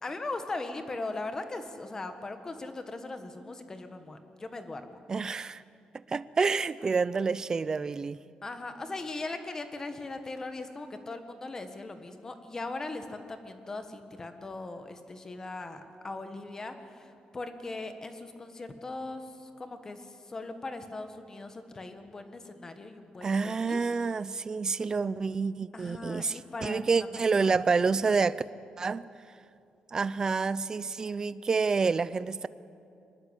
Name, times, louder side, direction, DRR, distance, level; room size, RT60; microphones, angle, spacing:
voice 1, 0.0-5.0 8.4-23.8 25.7-26.8 27.4-27.5 27.9-28.0, left 2 dB, 20° left, 8 dB, 1.6 m, -39 dB
voice 2, 5.1-5.6 5.9-8.2 23.2-28.4 28.8-29.0 29.9-32.5, right 4 dB, 25° right, 17 dB, 0.5 m, -28 dB
23.5 x 20.5 x 8.2 m, 2.6 s
wide cardioid pair, 165°, 3 cm